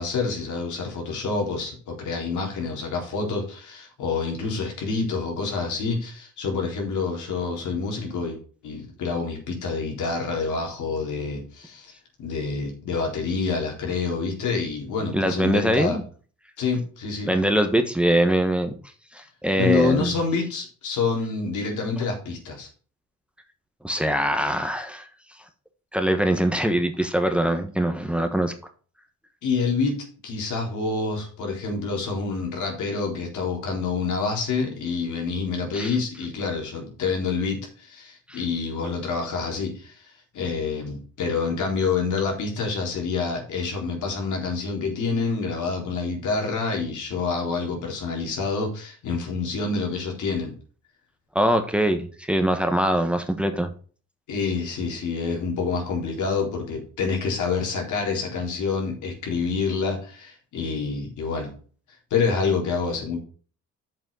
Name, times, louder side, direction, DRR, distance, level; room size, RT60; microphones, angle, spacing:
voice 1, 0.0-8.4 8.6-11.9 12.2-16.0 16.6-17.3 19.6-22.7 29.4-50.5 54.3-61.5 62.1-63.2, left 4 dB, 75° left, 1 dB, 3.8 m, -27 dB
voice 2, 15.1-16.0 17.3-18.7 19.1-20.1 23.8-25.0 25.9-28.5 35.7-35.9 38.3-38.4 51.3-53.7, right 1 dB, 5° right, 6 dB, 1.3 m, -22 dB
7.4 x 5.5 x 6.5 m, 0.41 s
cardioid pair, 90°, 30 cm